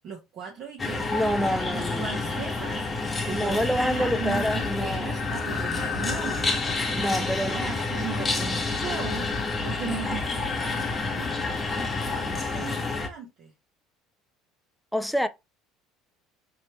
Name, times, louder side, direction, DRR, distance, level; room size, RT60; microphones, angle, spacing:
voice 1, 0.0-11.3 11.7-13.5, right 6 dB, 45° right, 1.0 m, -38 dB
Creature in the Sewer, 0.8-13.1, left 3 dB, 20° left, 0.8 m, -29 dB
voice 2, 1.1-2.2 3.3-5.1 6.9-7.7 14.9-15.3, equal, ahead, 0.4 m, -27 dB
Breathing, 3.4-12.1, left 7 dB, 50° left, 0.7 m, -38 dB
3.2 x 3.0 x 2.9 m
cardioid pair, 125°, 0 cm